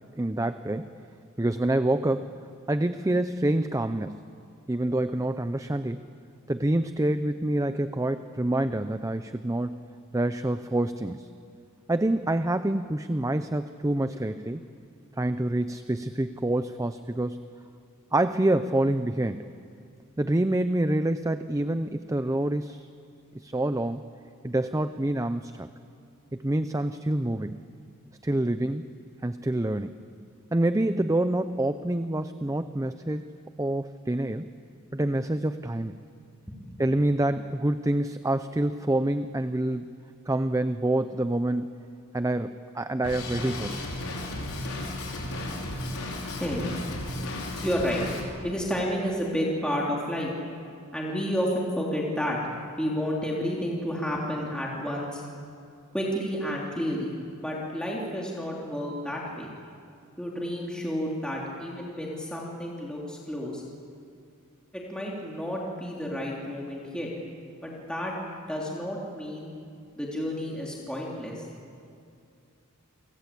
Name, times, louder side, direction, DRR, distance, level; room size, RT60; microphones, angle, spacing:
voice 1, 0.2-0.9 1.4-2.4 2.7-4.2 4.7-6.0 6.5-9.9 10.1-11.3 11.9-14.6 15.2-17.4 18.1-19.5 20.2-22.9 23.3-24.0 24.4-25.7 26.3-27.6 28.2-28.9 29.2-30.0 30.5-33.2 33.6-34.5 34.9-36.0 36.8-39.9 40.3-41.8 42.1-43.8, right 1 dB, 15° right, 10 dB, 0.6 m, -27 dB
Drum kit, 43.0-48.2, left 1 dB, 90° left, 5.5 m, -34 dB
voice 2, 47.6-48.0 48.4-50.3 50.9-52.4 52.8-55.2 55.9-57.1 57.4-59.5 60.2-63.6 64.7-67.1 67.6-68.2 68.5-69.5 70.0-71.5, equal, 5° left, -4 dB, 3.3 m, -31 dB
29.0 x 23.5 x 8.5 m, 2.4 s
head